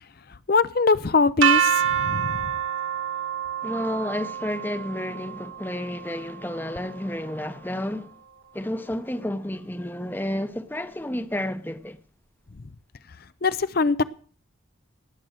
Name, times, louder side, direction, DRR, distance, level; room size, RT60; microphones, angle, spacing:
voice 1, 0.5-2.5 13.4-14.0, left 4 dB, 50° left, 0.6 m, -22 dB
sound 1, 1.4-7.3, right 9 dB, 75° right, 1.5 m, -27 dB
voice 2, 3.6-8.1 8.5-12.0, left 1 dB, 10° left, 0.8 m, -31 dB
18.5 x 7.6 x 6.5 m
head